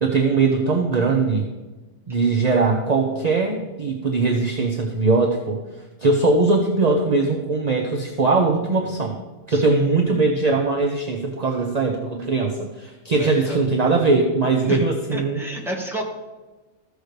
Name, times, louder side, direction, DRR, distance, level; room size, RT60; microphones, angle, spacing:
voice 1, 0.0-1.5 2.1-5.6 6.0-9.2 9.5-15.4, right 3 dB, 35° right, 2 dB, 0.8 m, -20 dB
voice 2, 9.5-9.8 13.2-13.6 14.6-14.8 15.1-16.0, right 1 dB, ahead, -1 dB, 1.5 m, -31 dB
14.5 x 6.5 x 3.3 m, 1.2 s
omnidirectional pair, 1.3 m